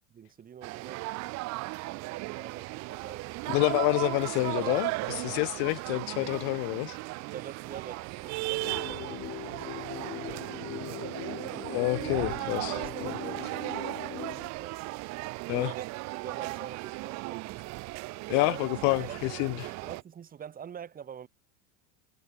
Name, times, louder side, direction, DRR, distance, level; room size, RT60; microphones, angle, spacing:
voice 1, 0.1-1.1 1.9-3.8 7.3-11.1 12.6-13.9 14.2-14.9 15.5-17.6 18.3-18.6 19.0-21.3, right 8 dB, 25° right, 5.9 m, -46 dB
sound 1, 0.6-20.0, right 23 dB, 50° right, 3.2 m, -36 dB
sound 2, 3.4-13.9, right 20 dB, 70° right, 5.0 m, -50 dB
voice 2, 3.5-7.0 11.7-12.7 15.5-15.7 18.3-19.7, left 40 dB or more, 55° left, 1.3 m, -28 dB
sound 3, 8.5-14.5, left 13 dB, 35° left, 3.1 m, -41 dB
supercardioid pair, 140°, 36 cm